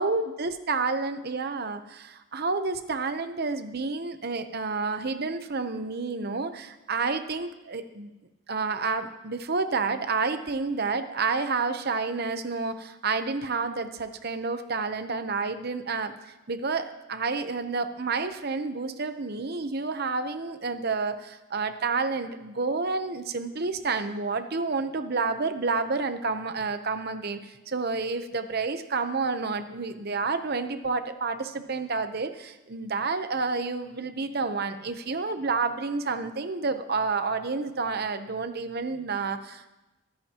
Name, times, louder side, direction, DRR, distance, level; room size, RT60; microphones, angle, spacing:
voice 1, 0.0-8.1 8.5-16.1 16.5-39.7, right 4 dB, 45° right, 9 dB, 0.8 m, -29 dB
22.5 x 10.0 x 2.9 m, 1.0 s
head